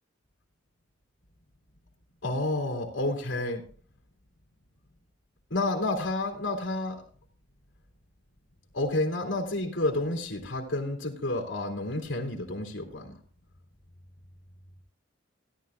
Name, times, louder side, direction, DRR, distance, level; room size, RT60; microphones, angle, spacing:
voice 1, 2.2-3.6 5.5-7.0 8.7-13.1, left 2 dB, 85° left, 0 dB, 2.6 m, -30 dB
17.5 x 11.5 x 2.3 m, 0.42 s
head